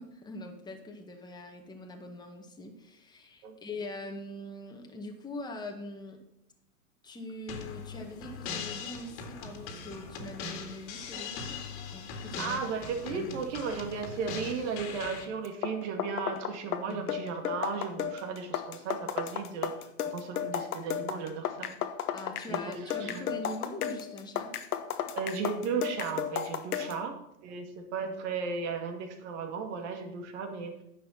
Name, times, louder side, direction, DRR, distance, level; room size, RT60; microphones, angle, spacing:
voice 1, 0.0-6.2 7.0-12.6 13.1-13.3 16.8-17.0 22.1-24.5 26.8-27.1, left 1 dB, 10° left, 2 dB, 1.7 m, -43 dB
sound 1, 7.5-15.3, left 5 dB, 45° left, 2.2 m, -40 dB
voice 2, 12.4-19.7 20.1-21.7 22.5-23.2 25.1-27.2 27.4-30.7, right 5 dB, 50° right, 5 dB, 2.5 m, -35 dB
sound 2, 15.4-27.0, left 9 dB, 75° left, 1.2 m, -34 dB
10.5 x 7.1 x 5.9 m, 0.83 s
hypercardioid pair, 115°, 45 cm